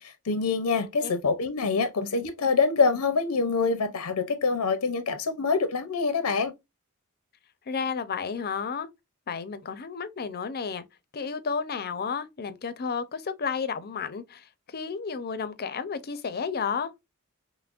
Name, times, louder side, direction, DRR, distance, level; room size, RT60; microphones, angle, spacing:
voice 1, 0.0-6.5, left 4 dB, 85° left, 0.7 m, -25 dB
voice 2, 0.8-1.1 7.7-8.9 9.3-10.8 11.1-16.9, left 5 dB, 45° left, 0.6 m, -32 dB
5.7 x 2.1 x 2.4 m
head